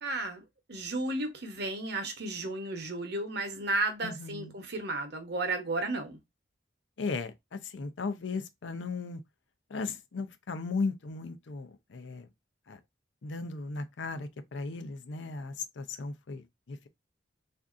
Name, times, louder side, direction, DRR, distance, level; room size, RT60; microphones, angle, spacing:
voice 1, 0.0-6.2, right 2 dB, 60° right, 0.9 m, -33 dB
voice 2, 4.0-4.6 7.0-9.2 9.7-12.3 12.7-12.8 13.2-16.9, left 4 dB, 70° left, 0.5 m, -36 dB
3.5 x 2.6 x 2.4 m
head